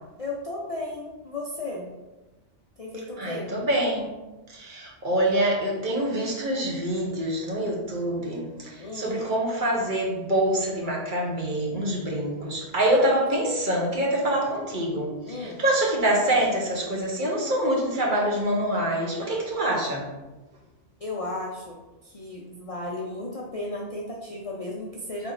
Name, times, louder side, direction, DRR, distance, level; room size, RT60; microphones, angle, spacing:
voice 1, 0.2-1.9 2.8-3.5 8.8-9.2 15.3-15.6 21.0-21.8 22.0-25.3, left 2 dB, 45° left, -3 dB, 0.5 m, -34 dB
voice 2, 3.2-4.1 4.5-15.1 15.4-20.1, right 1 dB, 45° right, -2 dB, 1.0 m, -25 dB
4.2 x 3.0 x 3.8 m, 1.1 s
omnidirectional pair, 1.2 m